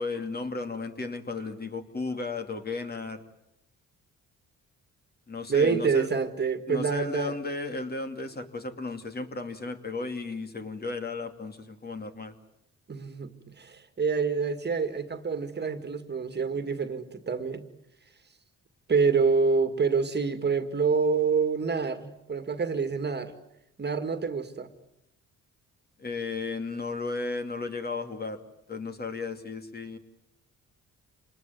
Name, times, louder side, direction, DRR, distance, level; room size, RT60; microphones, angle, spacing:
voice 1, 0.0-3.2 5.3-6.1 6.7-12.4 26.0-28.4 28.7-30.0, left 3 dB, 30° left, 7 dB, 2.7 m, -34 dB
voice 2, 5.5-7.4 12.9-17.6 18.9-23.4 23.8-24.7, right 5 dB, 35° right, 9 dB, 2.1 m, -27 dB
27.5 x 20.0 x 9.3 m, 0.83 s
cardioid pair, 90°, 30 cm